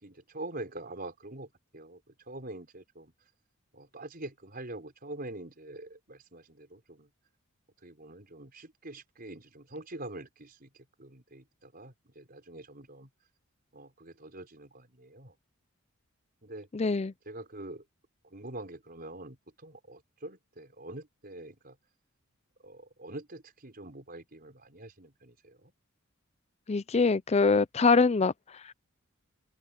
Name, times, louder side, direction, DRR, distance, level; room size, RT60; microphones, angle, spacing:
voice 1, 0.0-1.5 1.7-2.0 2.3-3.1 3.7-7.1 7.8-10.7 11.0-13.1 13.7-15.3 16.4-16.7 17.3-17.8 18.3-19.4 19.6-21.8 22.6-25.7, right 2 dB, 45° right, 5.6 m, -44 dB
voice 2, 16.7-17.1 26.7-28.7, left 4 dB, 30° left, 0.5 m, -24 dB
head